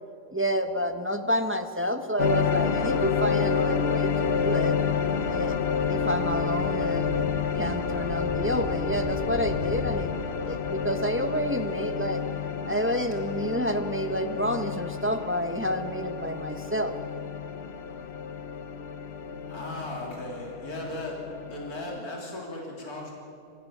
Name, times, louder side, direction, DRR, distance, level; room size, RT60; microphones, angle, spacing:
voice 1, 0.3-4.7 5.3-7.3 7.6-10.1 10.4-12.2 12.6-16.9, equal, 10° right, 7 dB, 0.8 m, -29 dB
sound 1, 2.2-22.0, left 6 dB, 50° left, 0.9 m, -29 dB
sound 2, 4.2-10.1, equal, 15° left, 1.8 m, -40 dB
voice 2, 19.3-21.2 21.5-23.1, left 1 dB, 70° left, -2 dB, 3.9 m, -37 dB
26.5 x 16.5 x 7.2 m, 2.5 s
omnidirectional pair, 1.6 m